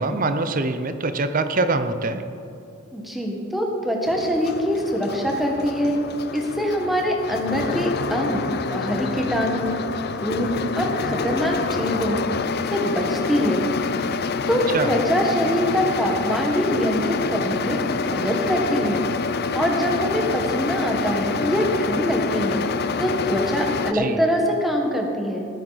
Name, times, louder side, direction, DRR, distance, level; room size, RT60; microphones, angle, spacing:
voice 1, 0.0-2.2 14.7-14.9 23.9-24.2, right 3 dB, 40° right, 9 dB, 0.6 m, -24 dB
voice 2, 2.9-6.0 6.3-8.4 8.7-9.8 10.2-12.2 12.7-13.7 14.5-19.0 19.5-22.6 23.0-25.5, equal, ahead, 0 dB, 1.4 m, -24 dB
sound 1, 4.1-23.9, left 4 dB, 45° left, 0.5 m, -27 dB
19.0 x 9.1 x 4.1 m, 2.7 s
head